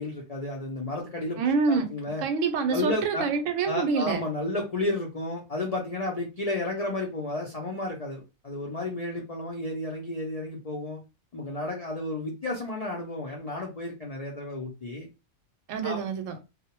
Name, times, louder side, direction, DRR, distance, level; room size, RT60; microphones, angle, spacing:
voice 1, 0.0-1.4 1.7-2.2 2.7-3.3 3.7-11.0 11.3-15.1 15.8-16.0, left 2 dB, 70° left, 0.3 m, -32 dB
voice 2, 1.4-1.9 2.2-4.2 15.7-16.4, right 5 dB, 75° right, 0.9 m, -26 dB
2.3 x 2.0 x 2.9 m
omnidirectional pair, 1.4 m